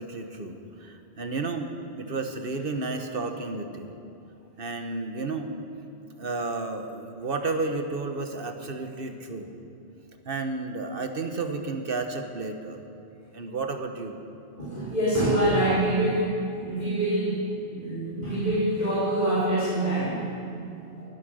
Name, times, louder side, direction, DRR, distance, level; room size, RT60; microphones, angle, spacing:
voice 1, 0.0-4.0 4.6-5.5 6.2-9.6 10.1-12.8 13.3-14.2, right 3 dB, 55° right, 5 dB, 1.4 m, -32 dB
voice 2, 14.6-20.3, right 1 dB, 40° left, -12 dB, 4.3 m, -25 dB
19.5 x 10.5 x 6.4 m, 2.7 s
omnidirectional pair, 1.1 m